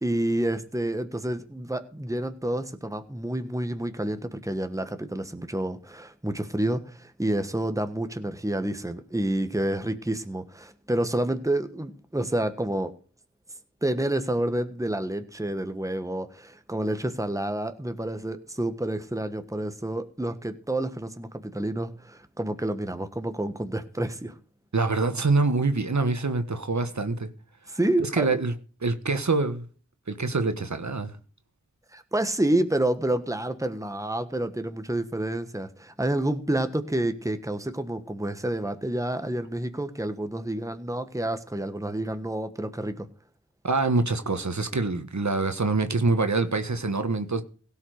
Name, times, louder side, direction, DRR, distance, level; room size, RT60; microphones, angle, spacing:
voice 1, 0.0-12.9 13.8-24.3 27.7-28.3 31.9-43.1, right 1 dB, 10° right, 1.3 m, -29 dB
voice 2, 24.7-27.3 28.0-28.5 28.8-29.6 30.1-31.1 43.6-47.4, right 3 dB, 65° right, 1.4 m, -25 dB
17.0 x 5.8 x 6.5 m
wide cardioid pair, 45°, 31 cm